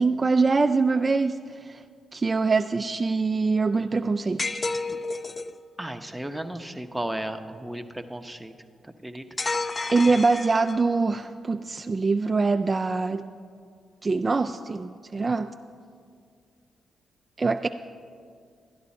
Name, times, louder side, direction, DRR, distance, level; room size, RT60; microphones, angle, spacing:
voice 1, 0.0-1.8 2.1-4.5 9.9-13.3 14.0-15.5 17.4-17.7, right 4 dB, 35° right, 7 dB, 0.3 m, -24 dB
sound 1, 4.4-5.6 9.4-11.0, left 3 dB, 35° left, 0.4 m, -30 dB
voice 2, 5.8-8.5 8.8-9.2, right 1 dB, 5° right, 7 dB, 0.8 m, -34 dB
12.5 x 10.5 x 4.3 m, 2.2 s
supercardioid pair, 50°, 0 cm